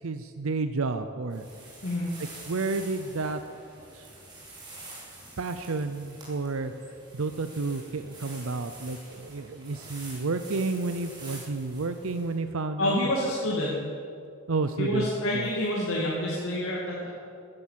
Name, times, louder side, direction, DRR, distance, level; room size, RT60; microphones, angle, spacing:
voice 1, 0.0-1.5 2.5-3.4 3.9-4.1 5.4-6.7 7.1-13.0 14.5-15.1 15.3-15.5, right 3 dB, 75° right, 9 dB, 0.6 m, -31 dB
sound 1, 1.3-12.4, right 2 dB, 20° right, 4.0 m, -47 dB
voice 2, 12.8-13.7 14.8-17.1, left 1 dB, 75° left, -5 dB, 2.5 m, -28 dB
14.5 x 10.5 x 7.5 m, 2.4 s
head